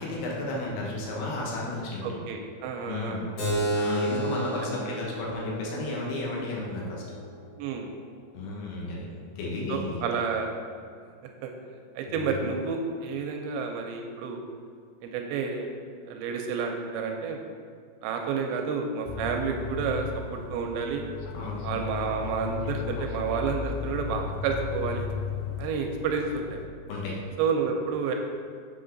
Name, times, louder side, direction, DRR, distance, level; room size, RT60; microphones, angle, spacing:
voice 1, 0.0-2.2 2.8-3.2 3.7-7.0 8.3-9.1 9.4-10.0 12.1-12.4 21.3-21.7 26.9-27.2, left 2 dB, 65° left, -4 dB, 2.3 m, -33 dB
voice 2, 2.0-3.2 4.6-4.7 7.6-7.9 9.7-10.5 11.4-11.5 12.0-14.4 15.0-15.7 16.1-17.4 18.0-21.0 21.6-25.0 25.6-26.6 27.4-28.1, right 5 dB, 85° right, 3 dB, 2.6 m, -30 dB
Keyboard (musical), 3.4-8.5, right 1 dB, 50° left, 2.7 m, -33 dB
sound 1, 19.1-26.7, left 6 dB, 90° left, 3.1 m, -35 dB
7.8 x 6.0 x 3.9 m, 2.1 s
omnidirectional pair, 5.5 m